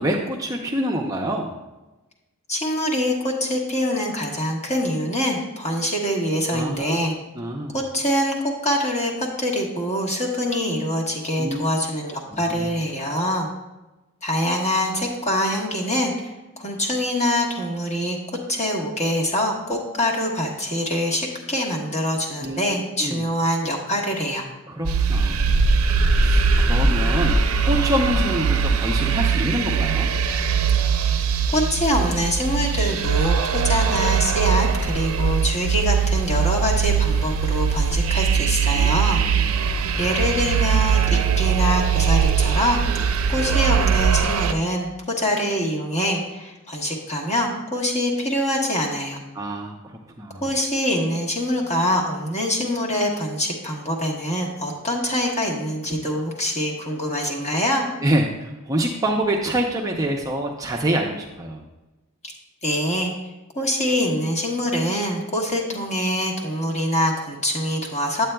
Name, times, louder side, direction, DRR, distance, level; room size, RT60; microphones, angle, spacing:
voice 1, 0.0-1.5 6.5-7.0 7.4-7.8 11.4-11.6 12.3-12.7 22.4-22.6 23.0-23.2 24.7-25.7 26.2-27.3 27.6-30.1 38.7-38.9 49.3-49.8 50.2-50.4 58.0-61.6, right 1 dB, 15° right, -1 dB, 0.5 m, -26 dB
voice 2, 2.5-7.1 7.7-13.5 14.2-18.2 18.5-24.5 31.5-39.2 40.0-42.8 43.3-49.2 50.4-57.9 62.6-63.1 63.5-68.3, equal, 30° left, -2 dB, 1.2 m, -24 dB
sound 1, 24.8-44.5, right 5 dB, 70° right, 0.5 m, -21 dB
8.8 x 8.4 x 2.2 m, 1.1 s
head